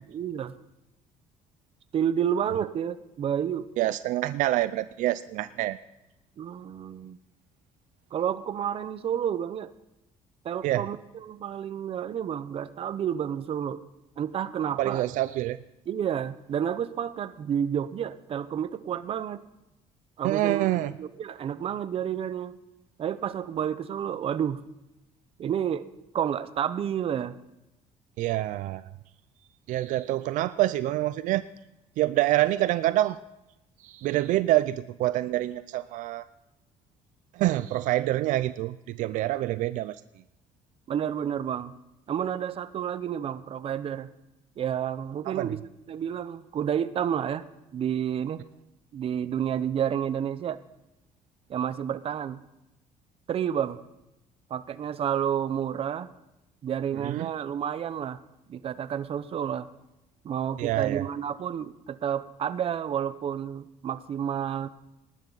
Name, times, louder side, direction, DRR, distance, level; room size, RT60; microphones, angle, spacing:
voice 1, 0.1-0.5 1.9-3.7 6.4-7.2 8.1-9.7 10.4-13.8 14.2-15.1 15.9-19.4 20.2-22.6 23.0-24.6 25.4-25.9 26.1-27.4 40.9-41.7 42.1-44.1 44.6-45.6 45.9-47.5 47.7-48.4 48.9-50.6 51.5-52.4 53.3-53.8 54.5-56.1 56.6-58.2 58.5-59.7 60.2-64.7, right 9 dB, 45° right, 14 dB, 0.7 m, -30 dB
voice 2, 3.8-5.8 10.6-10.9 14.8-15.6 20.2-20.9 28.2-28.9 29.7-31.4 32.0-33.2 33.8-36.2 37.3-40.0 45.3-45.5 57.0-57.3 60.6-61.1, right 15 dB, 75° right, 14 dB, 0.4 m, -26 dB
19.0 x 11.5 x 4.0 m, 0.95 s
cardioid pair, 120°, 13 cm